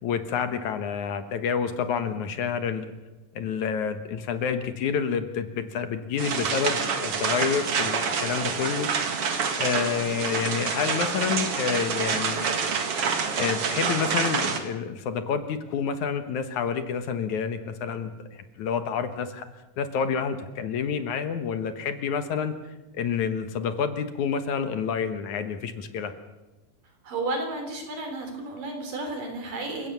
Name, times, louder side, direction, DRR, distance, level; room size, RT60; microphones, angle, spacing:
voice 1, 0.0-2.9 3.4-8.9 9.6-12.5 13.4-19.5 19.8-22.5 22.9-26.1, left 6 dB, 65° left, 9 dB, 2.6 m, -28 dB
sound 1, 6.2-14.6, right 5 dB, 50° right, 2.6 m, -27 dB
voice 2, 27.0-29.9, right 2 dB, 75° right, 4 dB, 5.7 m, -32 dB
28.5 x 16.5 x 7.0 m, 1.1 s
omnidirectional pair, 3.9 m